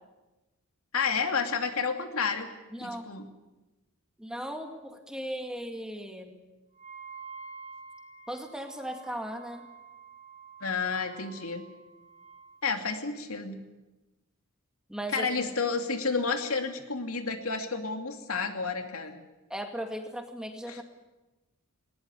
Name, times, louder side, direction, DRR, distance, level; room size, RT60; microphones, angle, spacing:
voice 1, 0.9-2.5 2.8-3.3 10.6-11.6 12.6-13.6 15.1-19.2 20.7-20.8, left 5 dB, 80° left, 5 dB, 2.7 m, -30 dB
voice 2, 2.7-3.1 4.2-6.4 8.3-9.6 14.9-15.3 19.5-20.8, equal, 5° right, 4 dB, 2.3 m, -37 dB
Wind instrument woodwind instrument, 6.8-12.6, right 5 dB, 35° right, 2.5 m, -48 dB
20.0 x 19.5 x 9.8 m, 1.1 s
head